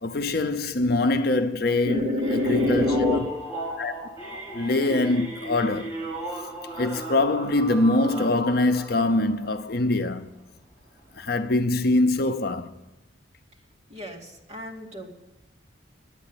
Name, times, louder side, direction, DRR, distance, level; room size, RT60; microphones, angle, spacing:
voice 1, 0.0-3.2 3.8-3.9 4.5-5.9 6.8-10.3 11.2-12.7, left 2 dB, 50° left, 0.6 m, -23 dB
voice 2, 1.8-3.2 13.9-15.1, left 1 dB, 35° right, 2.3 m, -26 dB
sound 1, 2.2-9.8 10.3-10.5 11.0-11.1 11.3-11.4, right 1 dB, 15° right, 4.9 m, -36 dB
11.0 x 9.0 x 8.9 m
head